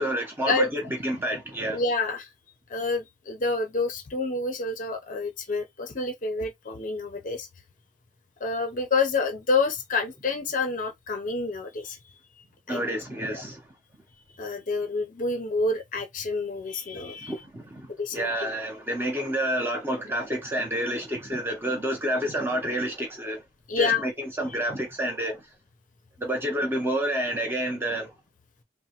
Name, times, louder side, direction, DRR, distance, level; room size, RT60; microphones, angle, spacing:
voice 1, 0.0-1.8 12.7-13.6 17.2-23.4 23.7-25.5 26.2-28.1, right 1 dB, 10° right, 0.6 m, -29 dB
voice 2, 1.7-2.3 2.7-7.5 8.4-12.0 12.7-12.8 13.3-13.4 14.4-17.3 18.0-18.5 23.7-24.0, left 3 dB, 40° left, 0.5 m, -28 dB
2.9 x 2.1 x 2.8 m
head